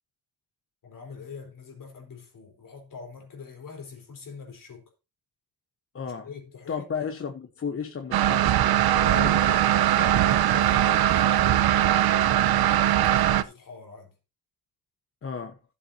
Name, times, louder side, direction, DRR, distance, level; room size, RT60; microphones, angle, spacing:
voice 1, 0.8-4.8 6.2-6.9 8.9-9.5 9.9-14.1, left 5 dB, 60° left, 4.1 m, -43 dB
voice 2, 5.9-6.3 6.7-8.7 9.1-9.6 15.2-15.6, left 6 dB, 35° left, 1.1 m, -33 dB
sound 1, 8.1-13.4, right 12 dB, 80° right, 0.8 m, -21 dB
16.0 x 7.6 x 2.8 m
wide cardioid pair, 155°, 36 cm